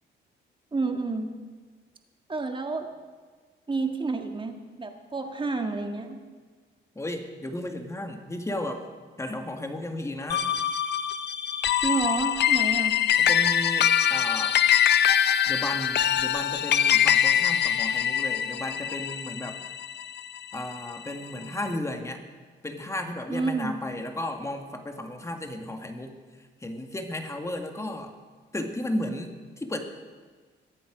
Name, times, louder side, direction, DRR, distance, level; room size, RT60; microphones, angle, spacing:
voice 1, 0.7-1.3 2.3-2.9 3.7-6.2 11.8-12.9 23.3-23.7, right 3 dB, 25° right, 5 dB, 1.7 m, -29 dB
voice 2, 7.0-8.8 9.2-10.5 13.2-14.6 15.5-19.6 20.5-22.2 22.6-26.1 26.6-28.1 28.5-29.8, left 1 dB, 15° left, 5 dB, 1.8 m, -34 dB
sound 1, 10.3-20.9, left 9 dB, 60° left, 0.6 m, -23 dB
21.5 x 8.7 x 5.0 m, 1.5 s
cardioid pair, 90°, 20 cm